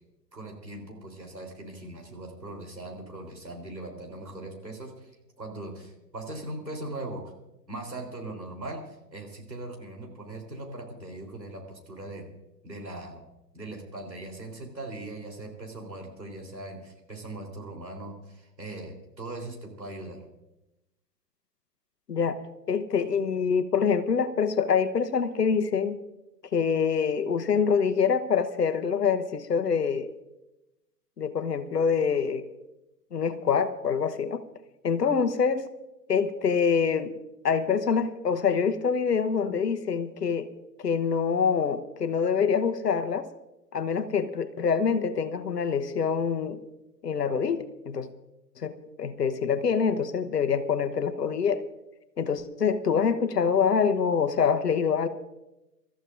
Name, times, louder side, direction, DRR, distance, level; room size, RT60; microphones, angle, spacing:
voice 1, 0.3-5.1 5.4-7.2 7.7-12.3 12.6-13.2 13.5-20.2, right 2 dB, 85° right, 1 dB, 3.8 m, -40 dB
voice 2, 22.7-26.0 26.5-30.1 31.2-32.4 33.1-34.4 34.8-35.6 36.1-37.1 37.4-40.5 40.8-43.3 43.7-46.6 47.0-48.1 48.6-51.6 52.2-55.1, left 6 dB, 70° left, 11 dB, 1.1 m, -25 dB
27.0 x 14.0 x 2.5 m, 0.94 s
figure-of-eight pair, 115°, 50 cm